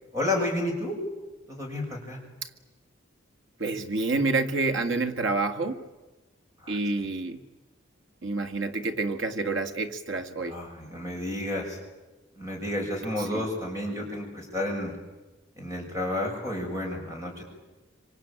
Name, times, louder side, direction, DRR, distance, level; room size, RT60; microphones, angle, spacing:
voice 1, 0.1-1.0 1.5-2.2 6.6-6.8 10.5-11.8 12.3-14.9 15.6-17.4, left 1 dB, 15° right, 0 dB, 6.8 m, -31 dB
voice 2, 3.6-5.8 6.7-7.4 8.2-10.6 13.2-13.4, right 3 dB, 80° right, 6 dB, 2.0 m, -28 dB
26.0 x 25.5 x 8.9 m, 1.1 s
head